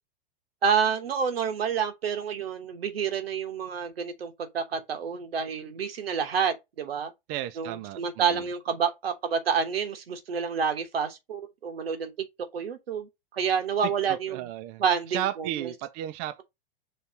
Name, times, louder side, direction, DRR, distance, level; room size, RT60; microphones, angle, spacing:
voice 1, 0.6-7.1 7.6-12.3 12.5-14.5 14.8-15.7, right 6 dB, 85° right, 1.2 m, -29 dB
voice 2, 7.3-8.4 13.8-14.8 15.1-16.4, right 13 dB, 45° right, 0.6 m, -34 dB
5.4 x 3.3 x 2.8 m
hypercardioid pair, 115°, 29 cm